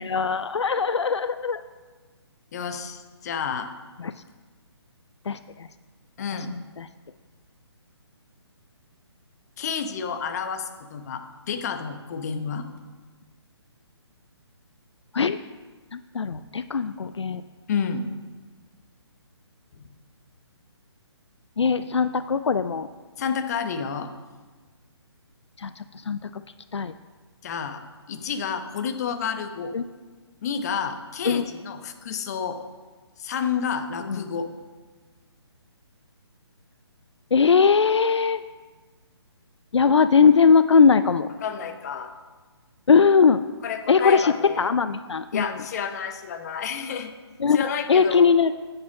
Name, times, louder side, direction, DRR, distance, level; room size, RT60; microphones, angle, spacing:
voice 1, 0.0-1.6 4.0-4.1 5.3-5.7 6.5-6.9 15.1-15.4 15.9-17.4 21.6-22.9 25.6-26.2 26.7-26.9 29.7-29.8 31.3-31.4 34.1-34.2 37.3-38.4 39.7-41.3 42.9-43.4 43.9-45.4 47.4-48.5, left 5 dB, 75° left, 12 dB, 0.5 m, -20 dB
voice 2, 2.5-3.7 6.2-6.5 9.6-12.6 17.7-18.0 19.8-19.9 23.2-24.1 27.4-27.8 28.1-29.7 30.4-32.6 33.2-34.5 41.4-42.1 43.6-44.7 45.3-47.1 47.5-48.3, left 6 dB, 35° left, 7 dB, 1.0 m, -30 dB
9.4 x 8.1 x 5.4 m, 1.4 s
figure-of-eight pair, 145°, 15 cm